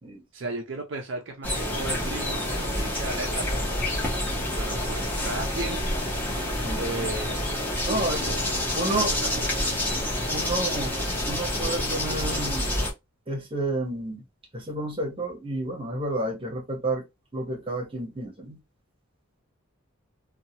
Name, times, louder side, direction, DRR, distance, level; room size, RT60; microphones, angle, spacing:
voice 1, 0.3-3.8 4.6-5.8 6.7-7.4 7.8-9.8, right 2 dB, 55° right, 0.5 m, -36 dB
sound 1, 1.4-12.9, left 1 dB, 10° left, 0.8 m, -28 dB
sound 2, 4.5-12.8, equal, 50° left, 0.7 m, -45 dB
voice 2, 7.9-8.2 8.7-9.1 10.3-11.0 11.3-12.7 13.3-14.2 14.5-17.0 17.3-18.6, right 1 dB, 25° right, 0.9 m, -30 dB
2.8 x 2.3 x 2.8 m
head